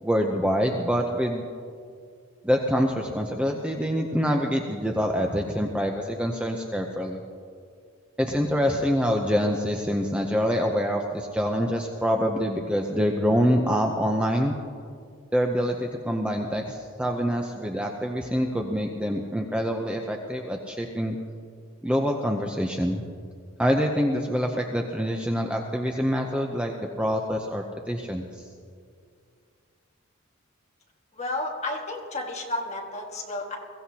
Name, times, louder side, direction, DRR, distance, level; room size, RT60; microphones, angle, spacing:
voice 1, 0.0-1.4 2.4-7.2 8.2-14.5 15.3-21.2 21.8-23.0 23.6-28.5, equal, 5° right, 2 dB, 0.6 m, -25 dB
voice 2, 31.1-33.6, left 2 dB, 30° left, -1 dB, 1.8 m, -32 dB
22.0 x 15.5 x 2.8 m, 2.2 s
head